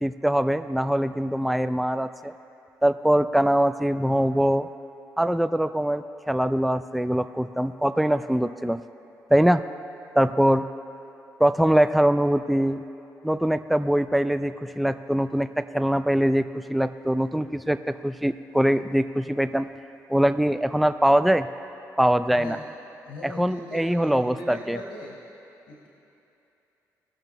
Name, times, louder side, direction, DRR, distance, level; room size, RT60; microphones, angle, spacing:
voice 1, 0.0-2.3 2.8-4.7 5.2-8.8 9.3-9.6 10.2-10.7 11.4-12.8 13.2-19.7 20.1-21.5 22.0-22.6 23.2-24.8, equal, ahead, 11 dB, 0.3 m, -22 dB
voice 2, 23.0-25.2 25.7-25.9, left 2 dB, 80° left, -3 dB, 1.3 m, -39 dB
18.0 x 6.6 x 3.0 m, 2.8 s
supercardioid pair, 65°, 7 cm